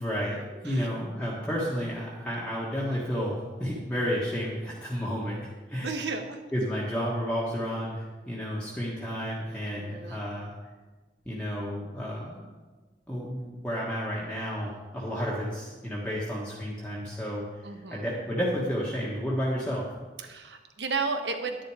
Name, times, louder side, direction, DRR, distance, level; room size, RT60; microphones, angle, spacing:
voice 1, 0.0-6.0 6.5-10.5 11.2-12.5 13.1-17.5 17.9-19.8, equal, 5° left, -6 dB, 1.6 m, -31 dB
voice 2, 5.8-6.4 9.6-10.2 17.6-18.0 20.2-21.6, right 4 dB, 70° right, 6 dB, 1.2 m, -33 dB
11.0 x 10.5 x 4.9 m, 1.3 s
head